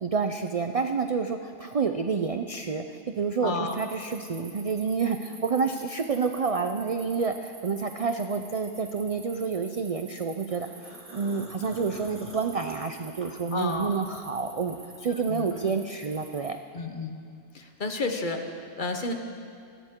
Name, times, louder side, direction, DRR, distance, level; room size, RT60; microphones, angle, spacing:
voice 1, 0.0-16.6, right 5 dB, 50° right, 6 dB, 0.4 m, -29 dB
voice 2, 3.4-3.8 13.5-14.1 15.1-15.5 16.7-17.2 17.5-19.1, left 3 dB, 45° left, 5 dB, 1.1 m, -32 dB
sound 1, 3.7-16.5, right 3 dB, 85° right, 2.0 m, -49 dB
sound 2, 10.5-14.0 14.4-15.9, equal, 10° right, 1.8 m, -47 dB
20.5 x 14.5 x 3.7 m, 2.4 s
omnidirectional pair, 1.3 m